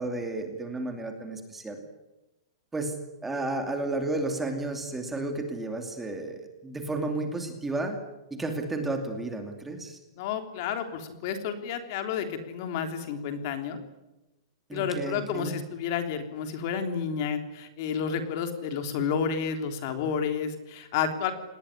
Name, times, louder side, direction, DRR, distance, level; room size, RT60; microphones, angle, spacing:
voice 1, 0.0-1.8 2.7-8.0 8.3-10.0 14.7-15.6, right 2 dB, 5° right, 4 dB, 2.7 m, -32 dB
voice 2, 10.2-13.8 14.7-21.3, left 7 dB, 40° left, 7 dB, 3.4 m, -30 dB
28.0 x 20.0 x 10.0 m, 1.0 s
supercardioid pair, 170°, 3 cm